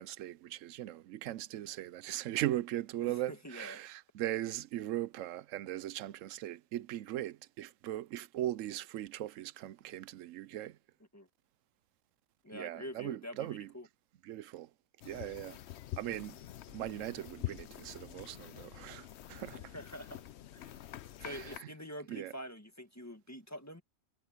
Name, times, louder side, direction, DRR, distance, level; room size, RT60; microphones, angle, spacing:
voice 1, 0.0-10.8 12.5-13.7 14.3-14.7 15.1-15.6 16.0-16.4 16.7-19.6 21.2-21.4 22.1-22.3, right 13 dB, 70° right, 0.9 m, -39 dB
voice 2, 3.0-3.8 11.1-11.3 12.4-13.9 19.5-20.2 20.5-20.8 21.2-23.8, equal, 10° left, 1.5 m, -46 dB
sound 1, 15.0-21.6, left 13 dB, 60° left, 0.8 m, -46 dB
omnidirectional pair, 1.4 m